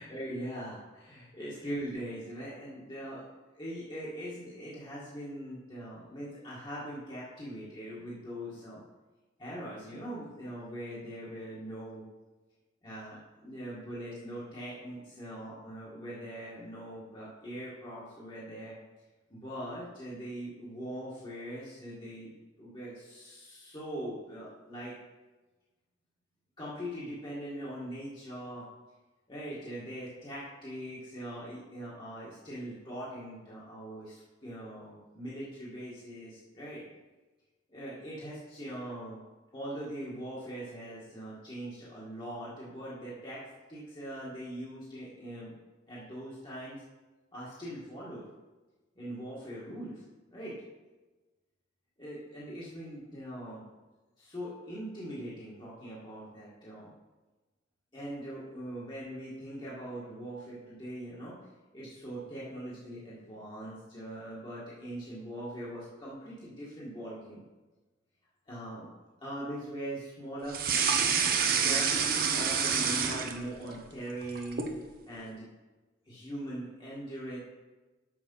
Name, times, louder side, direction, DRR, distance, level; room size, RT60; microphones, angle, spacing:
voice 1, 0.0-3.3 3.5-8.8 9.4-12.0 12.8-18.8 19.3-22.3 22.6-24.9 26.6-28.6 29.3-36.8 37.7-39.2 39.5-43.4 43.7-45.5 45.9-46.8 47.3-48.2 48.9-50.0 50.3-50.6 52.0-53.6 54.2-56.9 57.9-61.4 61.7-67.4 68.5-68.9 69.2-70.6 71.4-74.7 75.0-75.5 76.0-77.4, right 1 dB, 25° left, -8 dB, 1.7 m, -41 dB
sound 1, 70.5-73.7 74.1-74.8, right 6 dB, 50° right, 0.8 m, -28 dB
6.6 x 6.3 x 5.4 m, 1.2 s
head